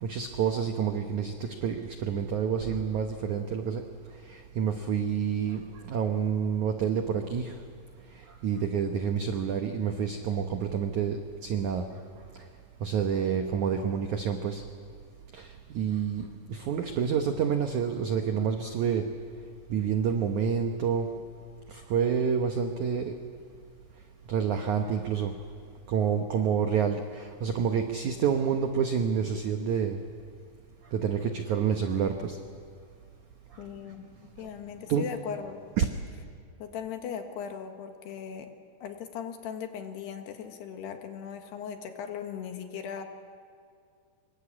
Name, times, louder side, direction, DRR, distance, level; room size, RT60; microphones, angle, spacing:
voice 1, 0.0-3.8 4.3-5.6 5.9-7.5 8.4-11.9 12.8-14.6 15.3-19.0 19.7-21.1 21.7-23.1 24.3-25.3 25.9-30.0 30.9-32.4 34.9-35.1 35.8-35.9, right 7 dB, 75° right, 5 dB, 1.8 m, -28 dB
voice 2, 33.6-34.1 34.4-35.6 36.6-38.5 38.8-43.0, left 8 dB, 70° left, 5 dB, 3.5 m, -38 dB
26.0 x 23.0 x 8.6 m, 2.3 s
omnidirectional pair, 5.1 m